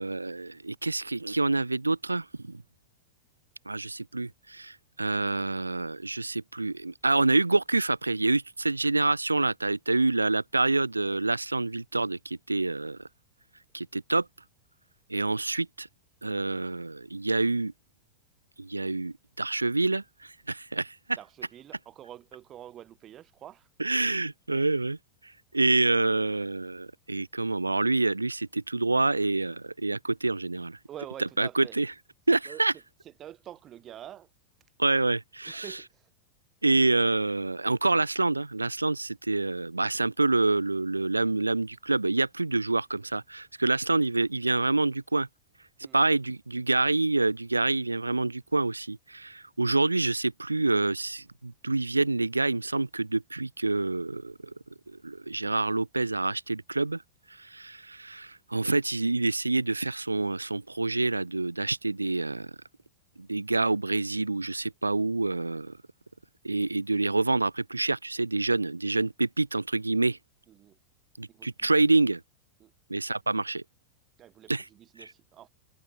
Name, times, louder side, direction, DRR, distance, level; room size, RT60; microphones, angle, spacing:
voice 1, 0.0-2.6 3.7-13.0 13.7-14.3 15.1-15.9 16.2-17.7 18.6-21.2 23.8-25.0 25.5-30.8 31.2-31.9 32.3-32.7 34.8-35.8 36.6-45.3 45.9-54.3 54.9-57.0 57.4-62.6 63.2-65.8 66.4-70.2 71.2-72.2 72.9-73.6 74.5-74.7 75.0-75.1, right 2 dB, 80° right, 0.9 m, -27 dB
voice 2, 21.2-23.7 30.9-31.8 32.5-32.6 33.2-34.3 35.5-36.0 45.8-46.0 70.5-70.8 71.3-71.7 72.6-72.7 74.2-75.5, right 11 dB, 30° right, 3.1 m, -46 dB
figure-of-eight pair, 90°, 0 cm